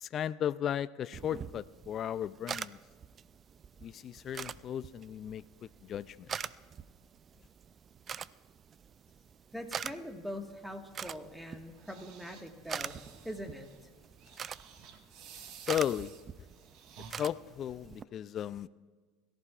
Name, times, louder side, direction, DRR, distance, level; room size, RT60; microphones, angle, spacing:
voice 1, 0.0-2.8 3.8-5.4 5.9-6.3 15.7-16.1 17.2-18.7, left 10 dB, 45° left, 0.3 m, -35 dB
sound 1, 1.1-18.0, right 7 dB, 35° right, 0.3 m, -45 dB
voice 2, 9.5-13.0 13.3-13.7, equal, ahead, 1.6 m, -42 dB
sound 2, 11.2-17.1, right 7 dB, 60° right, 1.6 m, -54 dB
22.0 x 14.0 x 2.5 m
supercardioid pair, 95°, 0 cm